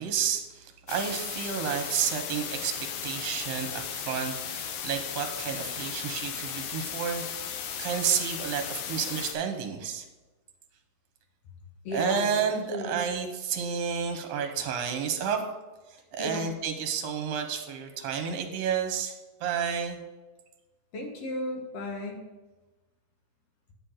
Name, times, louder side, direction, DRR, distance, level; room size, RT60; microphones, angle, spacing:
voice 1, 0.0-7.2 7.8-10.1 11.9-15.4 15.9-19.1 19.4-20.0, right 7 dB, 70° right, 4 dB, 1.9 m, -31 dB
sound 1, 0.9-9.3, left 8 dB, 85° left, 2.2 m, -36 dB
voice 2, 11.8-12.4 12.7-13.0 16.2-16.5 20.9-22.3, left 1 dB, 60° left, 1 dB, 2.3 m, -34 dB
9.5 x 4.3 x 6.4 m, 1.2 s
omnidirectional pair, 3.4 m